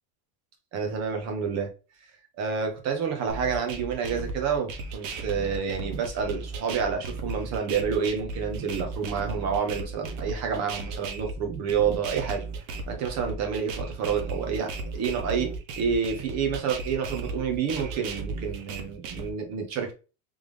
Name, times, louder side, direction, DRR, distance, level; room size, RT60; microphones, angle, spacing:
voice 1, 0.7-1.7 2.4-12.4 12.9-19.9, right 6 dB, 40° right, 1.1 m, -29 dB
sound 1, 3.3-19.3, right 3 dB, 70° right, 1.1 m, -36 dB
3.6 x 3.4 x 3.3 m
cardioid pair, 160°, 41 cm